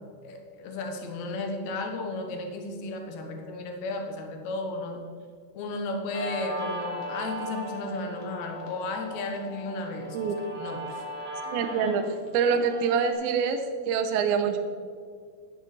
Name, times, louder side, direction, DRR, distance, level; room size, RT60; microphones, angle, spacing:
voice 1, 0.2-5.0 5.5-10.2 10.5-11.0, left 2 dB, 80° left, 3 dB, 1.6 m, -34 dB
Guitar, 6.1-13.1, right 1 dB, 55° right, 0.8 m, -38 dB
voice 2, 11.5-14.6, right 6 dB, 85° right, 6 dB, 3.0 m, -26 dB
12.5 x 10.5 x 4.3 m, 2.1 s
omnidirectional pair, 5.2 m